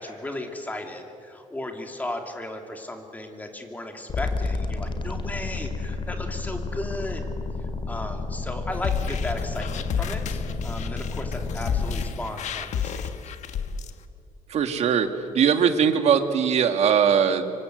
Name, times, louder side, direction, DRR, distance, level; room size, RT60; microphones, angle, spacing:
voice 1, 0.0-7.3 7.9-13.1, left 1 dB, 10° left, 4 dB, 2.7 m, -35 dB
sound 1, 4.1-12.1, left 3 dB, 40° left, 2.3 m, -31 dB
sound 2, 8.7-13.9, left 7 dB, 65° left, 1.3 m, -31 dB
voice 2, 14.5-17.5, right 7 dB, 55° right, 7 dB, 1.9 m, -21 dB
25.5 x 25.0 x 8.0 m, 2.6 s
cardioid pair, 145°, 13 cm